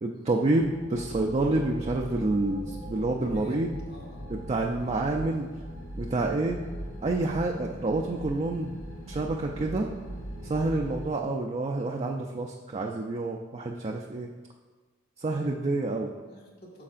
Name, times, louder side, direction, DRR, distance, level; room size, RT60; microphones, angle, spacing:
voice 1, 0.0-3.8 4.3-5.5 6.0-6.6 7.0-8.8 9.1-9.9 10.4-14.3 15.2-16.1, right 2 dB, 30° right, 1 dB, 0.4 m, -28 dB
sound 1, 0.6-11.1, equal, 90° left, 1.4 m, -40 dB
voice 2, 3.0-4.3 16.2-16.8, equal, 50° left, -1 dB, 1.8 m, -46 dB
9.8 x 6.5 x 2.5 m, 1.4 s
head